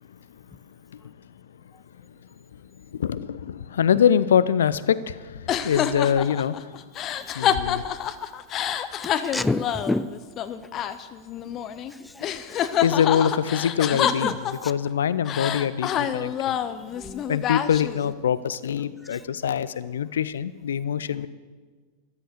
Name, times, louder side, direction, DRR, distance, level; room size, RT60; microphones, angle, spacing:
voice 1, 2.9-6.7 7.2-7.8 12.8-16.6 17.3-21.3, left 8 dB, 65° left, 17 dB, 0.5 m, -24 dB
sound 1, 5.5-11.9 12.2-14.9 15.3-18.1, left 9 dB, 30° left, 0.7 m, -27 dB
voice 2, 9.3-10.1 11.9-12.8 14.0-14.4 14.6-14.7 16.9-17.2 19.0-19.2, left 2 dB, 5° left, 15 dB, 0.4 m, -30 dB
13.5 x 12.5 x 6.4 m, 1.5 s
figure-of-eight pair, 90°, 0 cm